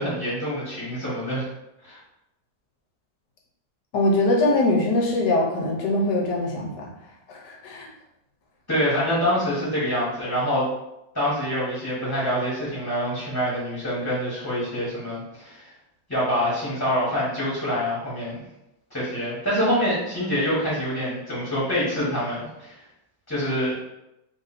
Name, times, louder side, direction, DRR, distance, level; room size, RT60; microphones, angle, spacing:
voice 1, 0.0-1.5 1.8-2.0 8.7-10.7 11.1-15.7 16.1-18.4 18.9-22.7 23.3-23.7, equal, 10° left, -9 dB, 1.2 m, -26 dB
voice 2, 3.9-6.9 7.3-7.9, left 2 dB, 85° left, 0 dB, 1.4 m, -22 dB
3.3 x 2.6 x 4.0 m, 0.88 s
omnidirectional pair, 1.9 m